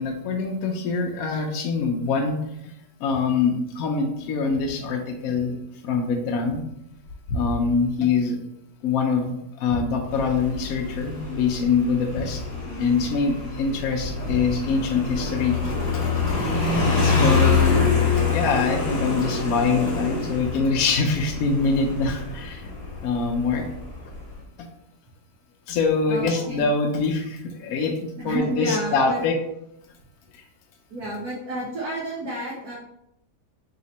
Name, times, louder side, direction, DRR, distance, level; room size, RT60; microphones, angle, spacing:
voice 1, 0.0-2.4 3.0-5.6 5.8-6.6 7.3-8.4 8.8-12.4 12.8-16.0 17.0-17.8 18.2-22.7 23.0-23.6 25.7-29.3 30.3-30.4, left 4 dB, 70° left, 2 dB, 0.9 m, -24 dB
Motorcycle, 10.1-24.4, left 4 dB, 45° left, 1.1 m, -26 dB
voice 2, 26.1-26.7 28.2-29.2 30.9-32.8, right 1 dB, 65° right, -4 dB, 1.3 m, -31 dB
3.3 x 2.8 x 4.0 m, 0.80 s
omnidirectional pair, 1.8 m